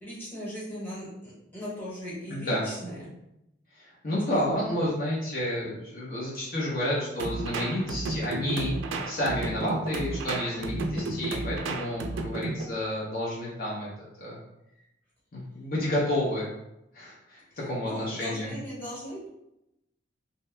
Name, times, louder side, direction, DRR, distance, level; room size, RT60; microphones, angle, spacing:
voice 1, 0.0-3.1 4.4-4.5 17.8-19.3, equal, 10° left, -8 dB, 1.1 m, -38 dB
voice 2, 2.3-2.6 3.8-8.7 9.1-13.9 14.2-14.4 15.3-16.5 16.9-18.5, left 1 dB, 50° left, -6 dB, 0.7 m, -30 dB
sound 1, 7.2-12.7, right 2 dB, 85° right, 0.4 m, -32 dB
2.7 x 2.2 x 3.2 m, 0.85 s
head